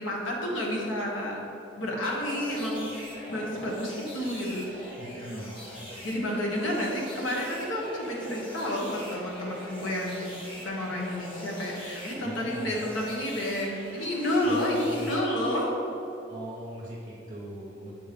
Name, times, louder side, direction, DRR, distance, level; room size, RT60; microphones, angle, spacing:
voice 1, 0.0-1.4 1.8-3.0 3.3-5.0 6.0-10.3 10.6-15.9, left 1 dB, 90° left, -3 dB, 1.3 m, -30 dB
sound 1, 2.0-15.6, equal, 30° left, 1.1 m, -42 dB
voice 2, 5.0-5.6 12.2-12.8 14.4-15.1 16.3-17.9, right 1 dB, 40° right, -5 dB, 0.8 m, -40 dB
7.2 x 3.0 x 5.1 m, 3.0 s
head